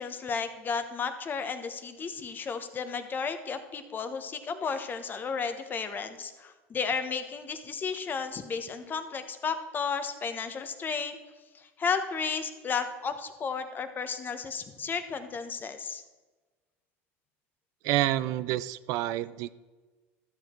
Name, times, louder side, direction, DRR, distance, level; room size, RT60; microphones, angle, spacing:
voice 1, 0.0-11.2 11.5-16.0, left 5 dB, 30° left, 9 dB, 1.1 m, -33 dB
voice 2, 17.8-19.5, right 14 dB, 60° right, 16 dB, 0.4 m, -28 dB
12.5 x 7.1 x 4.5 m, 1.3 s
supercardioid pair, 105°, 7 cm